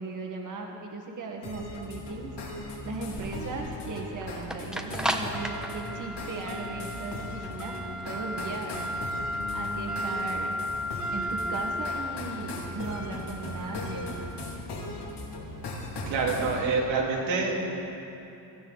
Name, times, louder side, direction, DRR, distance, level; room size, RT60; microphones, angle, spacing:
voice 1, 0.0-2.3 2.8-7.7 8.0-8.9 9.5-10.6 11.1-14.3, right 3 dB, 45° right, 1 dB, 1.6 m, -37 dB
sound 1, 1.4-16.6, left 2 dB, 65° left, 2.6 m, -38 dB
sound 2, 2.1-16.2, equal, ahead, 1.0 m, -35 dB
voice 2, 16.1-17.7, right 4 dB, 90° right, -3 dB, 2.5 m, -27 dB
17.0 x 13.0 x 3.9 m, 2.9 s
cardioid pair, 80°, 44 cm